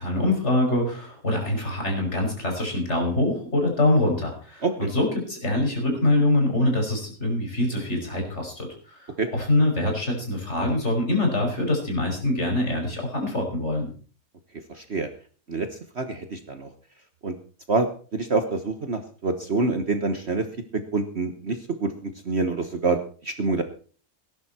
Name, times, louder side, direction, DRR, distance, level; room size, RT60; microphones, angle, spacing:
voice 1, 0.0-13.9, left 1 dB, 40° left, 1 dB, 5.9 m, -24 dB
voice 2, 14.7-15.1 15.5-15.7 15.9-16.7 17.2-17.3 17.7-20.4 20.7-23.6, right 3 dB, 40° right, 8 dB, 1.5 m, -26 dB
18.5 x 11.0 x 4.3 m, 0.40 s
omnidirectional pair, 1.8 m